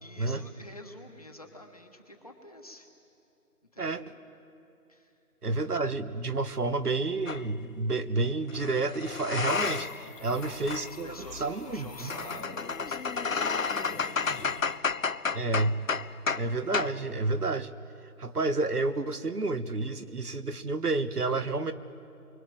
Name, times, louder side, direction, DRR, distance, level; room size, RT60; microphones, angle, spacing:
voice 1, 0.0-2.9 3.7-4.0 4.9-5.1 10.1-10.3 10.9-14.4, left 1 dB, 25° left, 3 dB, 1.5 m, -49 dB
voice 2, 5.4-11.1 11.4-12.1 15.3-15.8 16.4-17.7 18.2-21.7, right 3 dB, 75° right, 10 dB, 1.5 m, -30 dB
sound 1, 7.3-7.4 8.5-10.1 10.3-16.5 16.7-17.0, left 5 dB, 60° left, 0.8 m, -32 dB
sound 2, 9.5-14.8, left 3 dB, 85° left, 2.4 m, -45 dB
24.5 x 24.0 x 7.8 m, 2.7 s
figure-of-eight pair, 175°, 46 cm